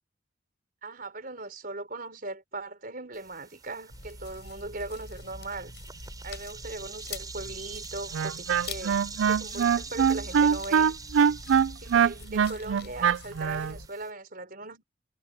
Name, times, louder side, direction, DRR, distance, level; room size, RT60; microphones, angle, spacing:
voice 1, 0.8-5.7 6.2-9.0 9.3-10.9 11.8-14.8, right 2 dB, 50° right, 4.5 m, -39 dB
sound 1, 3.1-14.1, right 5 dB, 20° right, 5.9 m, -45 dB
sound 2, 3.9-13.9, left 3 dB, 60° left, 6.0 m, -44 dB
Wind instrument woodwind instrument, 8.1-13.7, right 7 dB, 85° right, 0.4 m, -23 dB
head